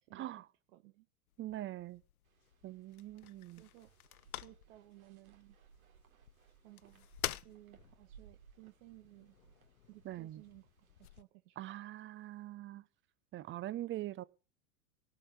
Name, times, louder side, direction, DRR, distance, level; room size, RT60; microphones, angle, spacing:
voice 1, 0.1-0.5 1.4-2.0 2.6-3.6 10.0-10.4 11.6-12.8 13.3-14.2, right 14 dB, 30° right, 0.8 m, -43 dB
voice 2, 0.7-1.1 3.6-3.9 4.4-5.6 6.6-7.1 7.3-9.4 9.9-11.7, right 18 dB, 55° right, 1.7 m, -58 dB
sound 1, 1.3-11.2, left 13 dB, 80° left, 0.7 m, -49 dB
sound 2, 2.2-11.2, right 7 dB, 75° right, 3.3 m, -64 dB
18.0 x 6.1 x 8.5 m
hypercardioid pair, 105°, 42 cm